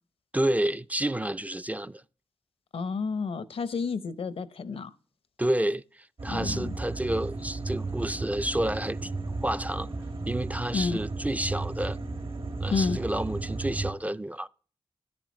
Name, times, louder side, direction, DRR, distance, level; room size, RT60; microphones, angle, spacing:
voice 1, 0.3-2.0 5.4-9.1 9.4-9.9 10.3-12.0 12.6-14.5, right 1 dB, 15° right, 0.3 m, -30 dB
voice 2, 2.7-4.9 6.3-6.8 10.7-11.0 12.7-13.0, left 4 dB, 75° left, 0.6 m, -30 dB
sound 1, 6.2-13.9, right 3 dB, 70° right, 2.1 m, -34 dB
9.8 x 8.8 x 3.0 m
cardioid pair, 55°, 10 cm